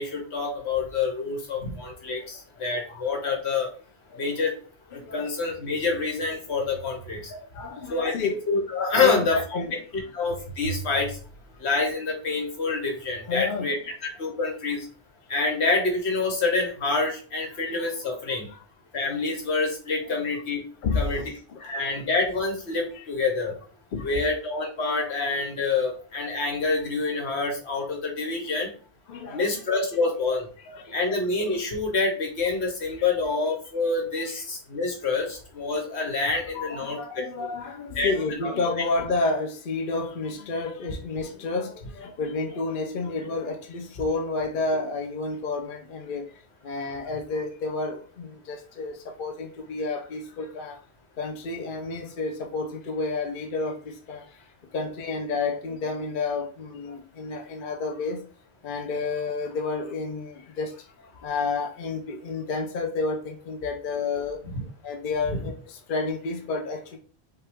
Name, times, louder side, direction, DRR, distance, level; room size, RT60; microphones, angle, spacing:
voice 1, 0.0-3.7 4.2-4.6 4.9-7.3 7.9-9.6 10.1-11.2 11.6-13.8 14.0-14.9 15.3-18.5 18.9-20.6 20.9-21.2 21.6-23.5 24.0-28.7 29.3-30.4 30.9-37.2 37.9-38.1 38.4-38.5 64.5-64.6, left 3 dB, 80° left, 1.4 m, -27 dB
voice 2, 7.3-8.3 9.0-9.7 13.3-14.0 18.5-18.6 20.0-20.2 20.8-21.9 22.9-23.1 23.9-24.1 29.1-29.7 30.6-31.0 33.0-33.1 34.2-34.4 36.5-46.3 46.6-50.8 51.2-54.2 54.7-58.2 58.6-60.7 61.2-64.4 64.8-67.0, left 3 dB, 55° left, 0.8 m, -30 dB
5.6 x 2.4 x 3.5 m
omnidirectional pair, 1.1 m